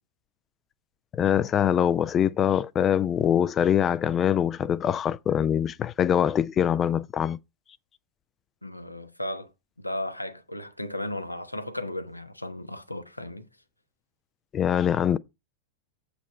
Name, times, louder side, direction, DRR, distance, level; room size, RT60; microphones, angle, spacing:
voice 1, 1.1-7.4 14.5-15.2, left 9 dB, 25° left, 0.4 m, -23 dB
voice 2, 8.6-9.5 9.8-13.5, left 1 dB, 85° left, 1.0 m, -35 dB
8.1 x 5.2 x 5.5 m
figure-of-eight pair, 90°, 0 cm